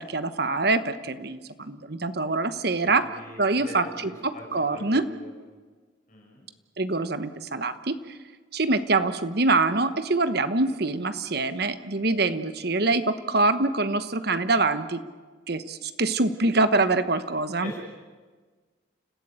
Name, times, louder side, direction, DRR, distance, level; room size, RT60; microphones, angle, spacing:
voice 1, 0.0-3.1 3.4-5.1 6.8-8.0 8.5-15.0 15.5-17.7, right 3 dB, 55° right, 11 dB, 1.1 m, -25 dB
voice 2, 2.8-4.4 4.7-5.3 6.1-6.4 17.6-17.8, left 1 dB, 40° left, -2 dB, 6.4 m, -43 dB
30.0 x 15.5 x 8.8 m, 1.4 s
head